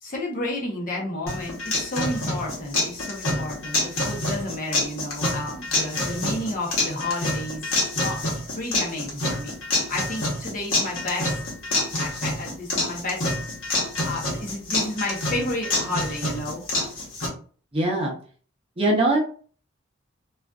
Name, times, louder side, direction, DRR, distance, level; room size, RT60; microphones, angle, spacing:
voice 1, 0.0-8.2 8.5-9.5 9.9-11.3 11.7-13.2 14.0-16.6, left 1 dB, 45° left, -1 dB, 0.7 m, -31 dB
sound 1, 1.3-17.3, left 2 dB, 90° left, 1.0 m, -27 dB
voice 2, 17.7-18.1 18.8-19.2, right 2 dB, 30° right, -1 dB, 0.7 m, -21 dB
2.5 x 2.4 x 2.2 m, 0.42 s
head